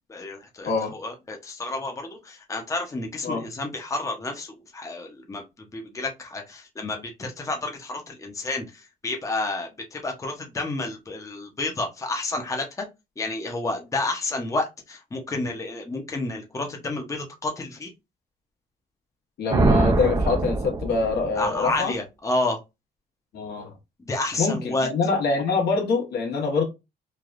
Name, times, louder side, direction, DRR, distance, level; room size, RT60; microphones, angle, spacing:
voice 1, 0.1-5.4 5.7-8.6 9.0-12.9 13.2-17.9 21.4-22.6 24.1-24.9, left 2 dB, 20° left, 0.6 m, -30 dB
voice 2, 19.4-21.9 23.3-23.7 24.4-26.6, left 4 dB, 75° left, 1.1 m, -25 dB
sound 1, 19.5-21.5, right 3 dB, 20° right, 0.4 m, -23 dB
3.3 x 2.3 x 2.4 m
cardioid pair, 105°, 17 cm